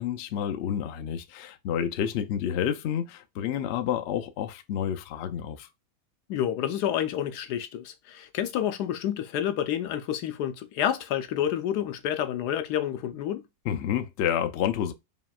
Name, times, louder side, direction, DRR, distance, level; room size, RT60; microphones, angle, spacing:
voice 1, 0.0-5.7 13.6-14.9, left 9 dB, 70° left, 0.6 m, -29 dB
voice 2, 6.3-13.4, left 10 dB, 90° left, 1.2 m, -29 dB
5.2 x 2.8 x 2.3 m
omnidirectional pair, 1.7 m